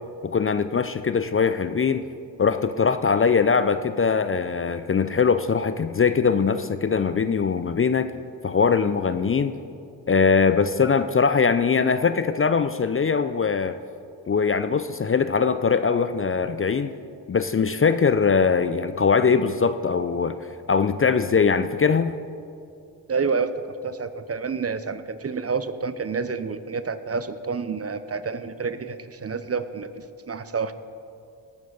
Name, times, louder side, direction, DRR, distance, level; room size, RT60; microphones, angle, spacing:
voice 1, 0.2-2.0 2.4-8.1 8.4-9.5 10.1-13.7 14.3-16.9 17.3-20.4 20.7-22.1, left 5 dB, 30° left, 11 dB, 0.5 m, -21 dB
voice 2, 23.1-30.7, right 5 dB, 30° right, 12 dB, 0.7 m, -29 dB
18.0 x 9.4 x 4.0 m, 2.5 s
supercardioid pair, 45°, 47 cm